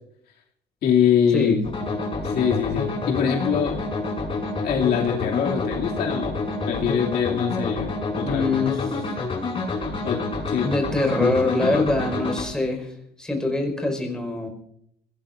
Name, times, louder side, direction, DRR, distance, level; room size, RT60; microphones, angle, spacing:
voice 1, 0.8-1.5 2.2-3.8 4.6-6.4 6.7-8.4 8.9-9.0 10.0-10.2 10.5-10.7 11.2-11.8, left 8 dB, 70° left, -2 dB, 2.6 m, -23 dB
sound 1, 1.6-12.4, left 3 dB, 30° left, 5.8 m, -28 dB
voice 2, 8.2-8.8 10.6-14.5, left 2 dB, 5° left, 2 dB, 5.0 m, -24 dB
30.0 x 17.5 x 2.6 m, 0.72 s
cardioid pair, 110°, 17 cm